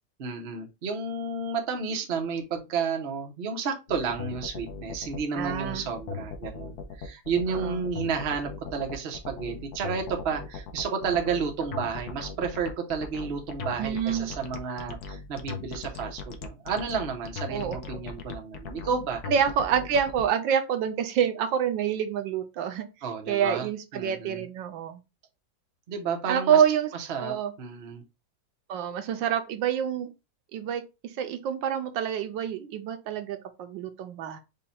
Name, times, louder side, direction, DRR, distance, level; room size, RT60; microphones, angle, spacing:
voice 1, 0.2-19.2 23.0-23.7 23.9-24.4 25.9-26.6 26.9-28.0, right 5 dB, 45° right, 0.8 m, -31 dB
sound 1, 3.9-20.2, left 5 dB, 65° left, 1.1 m, -38 dB
voice 2, 5.3-5.8 7.5-7.8 13.8-14.3 17.5-17.8 19.3-22.9 23.3-25.0 26.3-26.9 27.2-27.5 28.7-30.1 30.5-34.4, right 8 dB, 80° right, 1.4 m, -27 dB
5.2 x 2.3 x 4.2 m
omnidirectional pair, 2.1 m